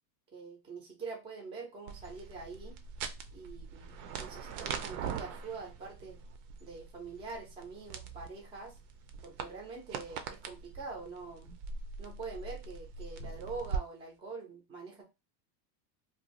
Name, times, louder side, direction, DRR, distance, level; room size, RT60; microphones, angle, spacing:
voice 1, 0.3-2.8 3.3-6.2 6.6-8.8 9.2-11.5 12.0-15.0, right 4 dB, 10° right, 0 dB, 0.4 m, -44 dB
sound 1, 1.9-13.8, right 6 dB, 65° right, 0.7 m, -42 dB
2.7 x 2.3 x 3.0 m, 0.25 s
supercardioid pair, 160°, 47 cm